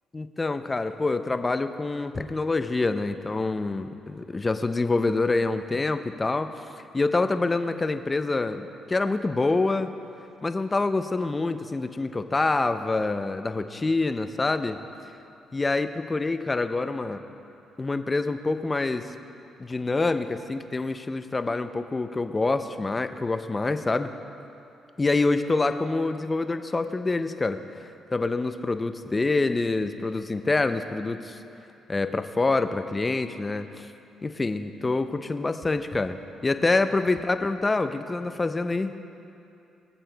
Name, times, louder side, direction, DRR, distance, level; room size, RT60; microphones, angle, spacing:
voice 1, 0.1-6.5 6.9-9.9 10.4-14.8 15.5-17.2 17.8-19.1 19.6-24.1 25.0-27.6 28.1-31.4 31.9-33.9 34.2-38.9, left 3 dB, 25° left, 9 dB, 0.5 m, -26 dB
21.0 x 7.4 x 2.3 m, 2.7 s
cardioid pair, 90°, 0 cm